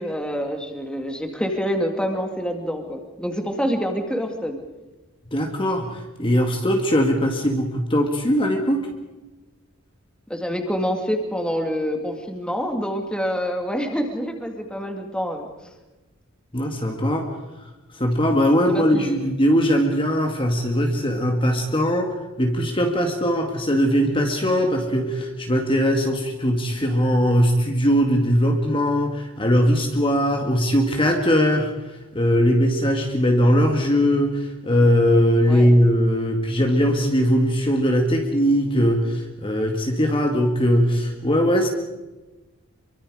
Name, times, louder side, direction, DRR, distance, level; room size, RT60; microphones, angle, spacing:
voice 1, 0.0-4.6 10.3-15.5 18.7-19.2 35.5-35.7, equal, 5° left, 3 dB, 2.5 m, -26 dB
voice 2, 5.3-8.9 16.5-17.3 17.9-31.7 32.1-41.7, equal, 25° left, 3 dB, 2.1 m, -20 dB
26.5 x 23.5 x 5.0 m, 1.1 s
head